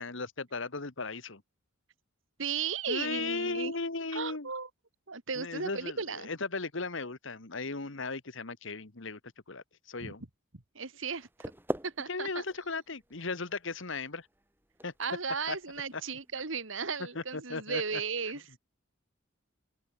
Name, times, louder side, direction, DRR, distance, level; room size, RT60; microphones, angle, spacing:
voice 1, 0.0-1.4 2.9-4.5 5.4-9.2 9.5-10.2 12.1-14.3 14.8-14.9 15.5-15.6 15.9-16.0 17.1-18.0, left 3 dB, 65° left, 1.6 m, -36 dB
voice 2, 2.4-3.7 4.1-4.7 5.1-6.3 10.0-10.1 10.5-11.5 11.8-12.4 15.0-18.4, right 5 dB, 65° right, 2.0 m, -35 dB
sound 1, 11.1-17.0, right 1 dB, 10° right, 7.6 m, -44 dB
open air
head